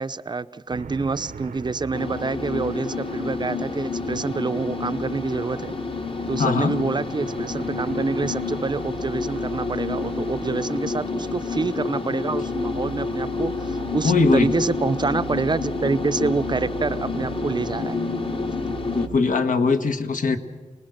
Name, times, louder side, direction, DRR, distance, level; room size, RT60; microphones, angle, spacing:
voice 1, 0.0-5.8 6.3-18.0, right 4 dB, 35° right, 14 dB, 0.6 m, -27 dB
sound 1, 0.7-19.2, right 6 dB, 90° right, 1.0 m, -39 dB
sound 2, 1.9-19.1, left 4 dB, 40° left, 1.2 m, -29 dB
voice 2, 6.4-6.7 14.0-14.5 18.9-20.4, left 4 dB, 75° left, 7 dB, 1.5 m, -20 dB
27.0 x 20.0 x 6.6 m, 1.4 s
wide cardioid pair, 90°, 14 cm